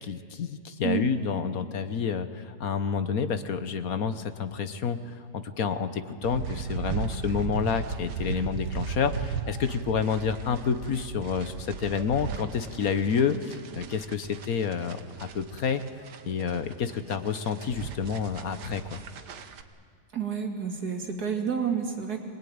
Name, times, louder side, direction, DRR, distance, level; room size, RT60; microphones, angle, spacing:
voice 1, 0.0-5.0 5.3-15.8 16.2-19.0, left 6 dB, 60° left, 10 dB, 1.4 m, -29 dB
sound 1, 6.2-19.6, right 6 dB, 85° right, 1.8 m, -37 dB
voice 2, 20.1-22.2, right 7 dB, 70° right, 3 dB, 2.9 m, -29 dB
24.5 x 20.5 x 9.5 m, 2.2 s
omnidirectional pair, 1.7 m